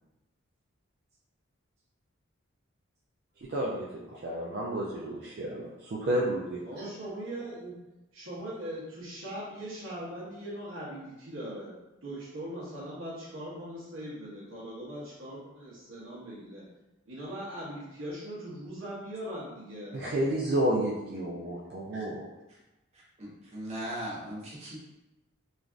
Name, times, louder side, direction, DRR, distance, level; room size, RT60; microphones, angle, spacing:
voice 1, 3.5-3.9 4.1-6.6 19.9-22.3, right 1 dB, 50° right, -5 dB, 0.3 m, -30 dB
voice 2, 6.6-7.8 8.1-11.8 12.0-16.7 17.1-19.9, right 1 dB, 65° right, -8 dB, 0.8 m, -40 dB
voice 3, 22.9-24.8, right 1 dB, 30° right, -5 dB, 0.7 m, -39 dB
3.2 x 2.4 x 2.4 m, 1.0 s
head